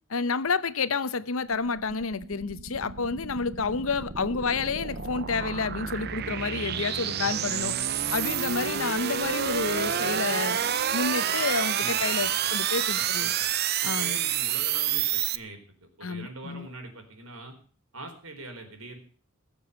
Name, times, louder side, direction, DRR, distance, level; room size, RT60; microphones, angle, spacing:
voice 1, 0.1-10.6 10.9-13.3 13.8-14.2 16.0-16.7, left 4 dB, 80° left, 0.8 m, -30 dB
sound 1, 1.4-15.4, right 9 dB, 50° right, 0.6 m, -29 dB
voice 2, 7.2-7.5 11.8-12.6 12.9-13.5 13.8-17.5 17.9-19.0, right 2 dB, 85° right, 4.2 m, -43 dB
20.5 x 7.2 x 6.9 m
head